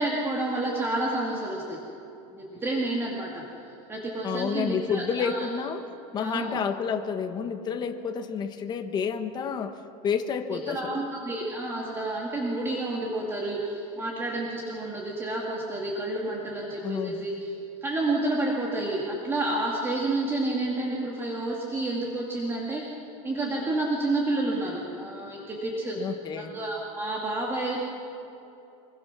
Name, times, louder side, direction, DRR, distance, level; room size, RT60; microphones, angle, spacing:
voice 1, 0.0-1.8 2.3-3.4 3.9-5.5 6.2-6.6 10.5-17.5 17.8-22.8 23.2-26.0 26.4-27.8, right 2 dB, 15° right, -3 dB, 2.3 m, -30 dB
voice 2, 4.2-5.8 6.1-11.0 16.8-17.2 26.0-26.6, left 6 dB, 25° left, 7 dB, 1.2 m, -30 dB
25.0 x 22.0 x 6.1 m, 2.8 s
supercardioid pair, 155°, 17 cm